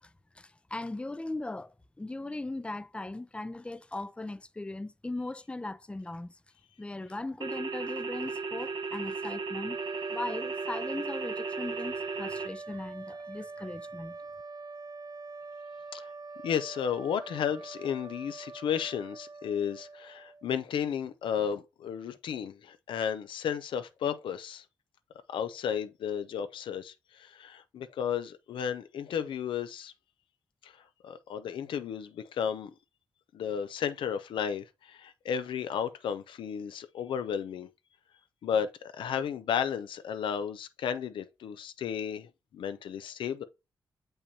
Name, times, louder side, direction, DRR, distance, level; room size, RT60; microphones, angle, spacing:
voice 1, 0.7-6.3 6.8-9.8 10.1-14.1, left 2 dB, 15° left, 0.5 m, -38 dB
sound 1, 7.4-12.5, right 4 dB, 75° right, 0.9 m, -35 dB
sound 2, 9.7-20.6, right 3 dB, 50° right, 0.4 m, -44 dB
voice 2, 16.4-24.6 25.3-29.9 30.6-30.7 31.0-32.7 33.3-37.7 38.4-43.4, left 8 dB, 90° left, 0.5 m, -33 dB
7.0 x 5.5 x 2.7 m
cardioid pair, 85°, 8 cm